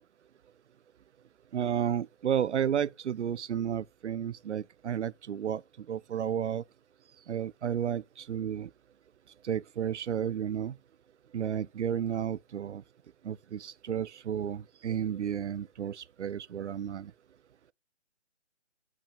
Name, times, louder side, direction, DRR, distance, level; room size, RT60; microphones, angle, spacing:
voice 1, 1.5-6.6 7.3-8.7 9.4-10.8 11.3-12.8 13.2-17.1, right 9 dB, 70° right, 0.5 m, -32 dB
9.0 x 6.1 x 7.3 m
hypercardioid pair, 155°, 37 cm